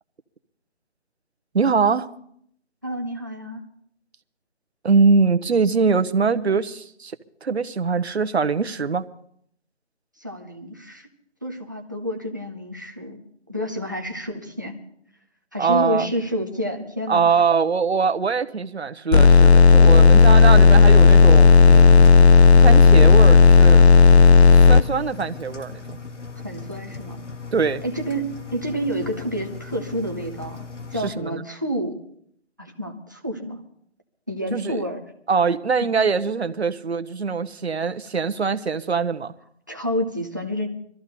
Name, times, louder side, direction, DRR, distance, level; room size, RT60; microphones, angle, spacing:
voice 1, 1.5-2.1 4.8-7.1 7.4-9.1 15.6-16.1 17.1-22.1 22.6-23.8 24.5-26.0 27.5-27.8 31.0-31.4 34.5-34.8 35.3-39.3, right 5 dB, 65° right, 1.0 m, -22 dB
voice 2, 2.8-3.6 10.2-11.1 11.4-13.2 13.5-14.8 15.5-17.3 26.4-27.2 27.8-32.0 32.6-33.6 34.3-35.0 35.8-35.9 39.7-40.7, equal, 15° right, 0.7 m, -29 dB
sound 1, 19.1-24.8, left 5 dB, 65° left, 0.5 m, -11 dB
Engine, 21.0-31.1, left 4 dB, 90° left, 1.9 m, -38 dB
22.5 x 14.0 x 4.1 m
figure-of-eight pair, 175°, 35 cm